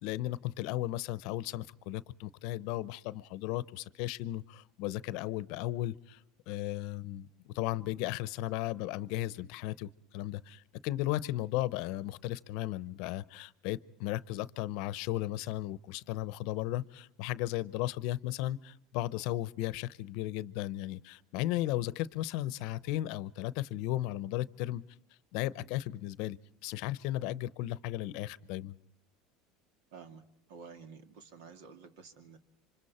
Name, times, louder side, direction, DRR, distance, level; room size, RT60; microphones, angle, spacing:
voice 1, 0.0-6.2 6.5-24.8 25.3-26.4 26.6-28.8, left 15 dB, 65° left, 19 dB, 0.7 m, -35 dB
voice 2, 29.9-32.4, right 5 dB, 75° right, 8 dB, 2.4 m, -51 dB
27.0 x 25.5 x 4.3 m, 0.72 s
supercardioid pair, 130°, 0 cm